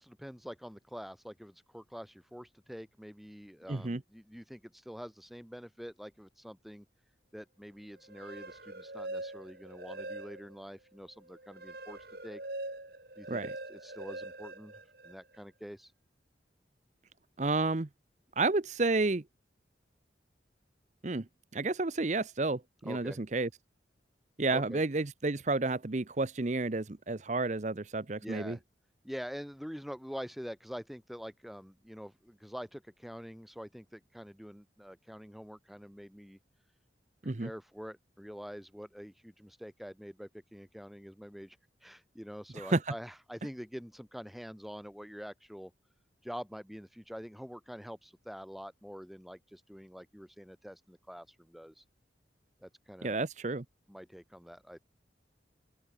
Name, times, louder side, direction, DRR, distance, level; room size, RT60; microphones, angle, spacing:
voice 1, 0.0-6.9 7.3-12.4 13.2-13.4 13.7-15.9 22.9-23.2 24.5-24.8 28.2-28.6 29.0-36.4 37.2-45.7 46.2-51.8 52.6-53.2 53.9-54.8, equal, ahead, 3.0 m, -46 dB
voice 2, 3.7-4.0 13.3-13.5 17.4-17.9 18.4-19.2 21.0-21.3 21.5-23.5 24.4-28.6 37.2-37.5 42.5-42.9 53.0-53.6, right 3 dB, 40° right, 0.8 m, -31 dB
sound 1, 8.0-10.7 11.1-15.4, right 2 dB, 55° right, 4.5 m, -43 dB
open air
head